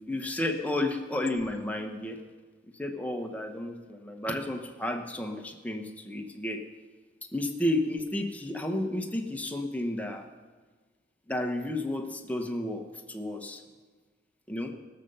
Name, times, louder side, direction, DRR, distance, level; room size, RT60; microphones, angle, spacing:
voice 1, 0.0-2.2 2.7-6.6 7.3-10.3 11.3-13.6 14.5-14.7, left 1 dB, 10° left, 3 dB, 0.9 m, -32 dB
16.0 x 6.7 x 6.8 m, 1.4 s
head